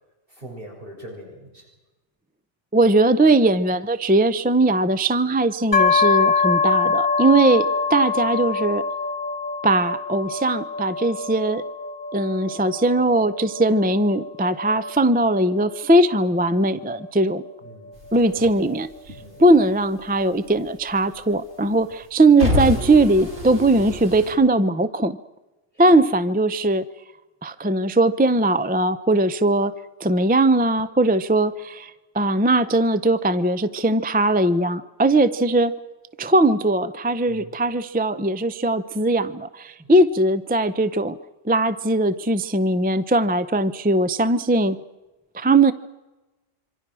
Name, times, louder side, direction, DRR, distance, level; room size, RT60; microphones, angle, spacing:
voice 1, 0.3-1.7 17.6-18.0 19.1-19.4 25.7-25.8 37.3-37.5, right 1 dB, 45° right, -1 dB, 6.4 m, -41 dB
voice 2, 2.7-8.8 9.6-11.6 12.1-17.4 18.1-18.9 19.4-25.2 25.8-26.8 27.4-29.7 30.0-35.7 36.2-41.2 41.4-44.8 45.3-45.7, right 2 dB, 10° right, 12 dB, 0.6 m, -19 dB
sound 1, 5.7-19.4, left 5 dB, 35° left, 2.7 m, -25 dB
sound 2, 18.0-19.7 20.0-21.3 21.7-24.3, left 2 dB, 65° right, 5.7 m, -28 dB
26.5 x 25.0 x 6.3 m, 1.1 s
omnidirectional pair, 1.3 m